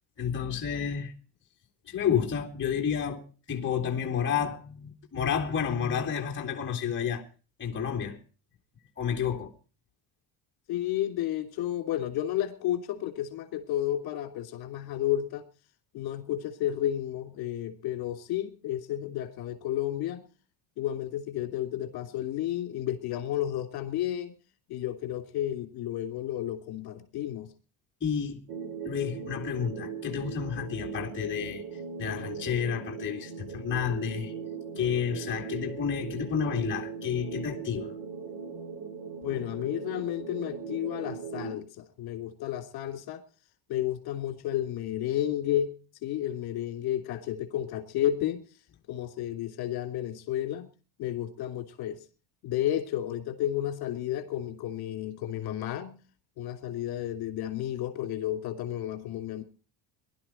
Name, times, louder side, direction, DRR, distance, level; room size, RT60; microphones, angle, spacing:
voice 1, 0.2-1.1 1.9-7.2 7.6-8.2 9.0-9.5 28.0-28.4 28.8-31.6 32.0-34.3 34.8-37.9, left 8 dB, 25° left, 2.7 m, -30 dB
voice 2, 10.7-15.4 15.9-20.3 20.8-24.3 24.7-27.5 39.2-43.2 43.7-45.7 46.0-48.4 48.9-50.7 51.0-52.0 52.4-56.0 56.4-59.4, left 12 dB, 50° left, 3.0 m, -32 dB
sound 1, 28.5-41.6, right 6 dB, 55° right, 2.7 m, -39 dB
22.0 x 12.0 x 4.5 m
cardioid pair, 155°, 47 cm